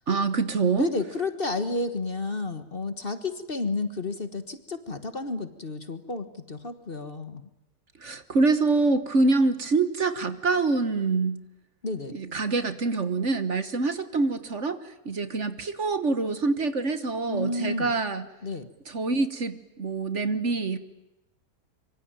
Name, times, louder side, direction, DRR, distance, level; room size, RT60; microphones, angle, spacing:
voice 1, 0.1-0.9 8.0-11.4 12.1-18.3 18.9-20.8, right 3 dB, 50° right, 12 dB, 1.6 m, -25 dB
voice 2, 0.8-7.5 11.8-12.2 17.3-17.9 18.4-18.7, left 3 dB, 35° left, 10 dB, 1.6 m, -31 dB
25.5 x 24.5 x 9.0 m, 0.94 s
omnidirectional pair, 1.7 m